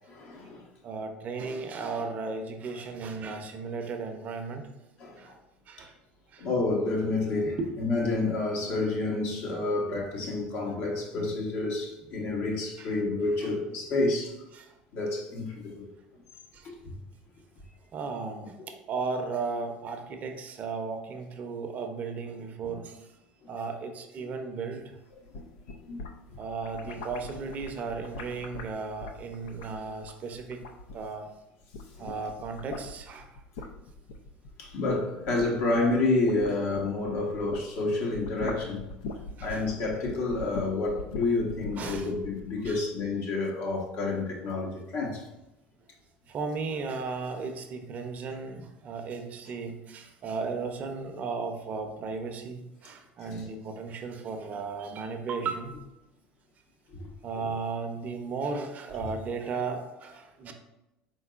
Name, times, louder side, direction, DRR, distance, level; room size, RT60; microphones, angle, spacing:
voice 1, 0.1-0.7 5.0-5.3 5.8-5.9 6.4-14.4 14.9-15.9 18.6-18.7 24.2-24.3 25.8-26.0 32.0-32.1 34.6-38.9 39.4-45.3 53.2-53.4 56.9-57.1 57.3-57.5, left 2 dB, 60° left, 1.1 m, -29 dB
voice 2, 0.8-4.7 5.2-5.3 5.7-5.9 6.3-6.5 7.4-7.7 12.8-12.9 13.4-13.5 14.5-14.7 16.5-16.7 17.9-23.0 23.5-25.0 26.4-30.6 30.9-31.3 32.0-33.2 39.4-39.7 41.8-42.1 42.6-42.8 46.3-55.7 57.2-60.5, right 4 dB, 45° right, 0.6 m, -35 dB
sound 1, 25.1-31.3 31.6-37.7 38.0-42.8, left 3 dB, 85° left, 0.4 m, -42 dB
4.5 x 3.9 x 2.4 m
supercardioid pair, 95°, 4 cm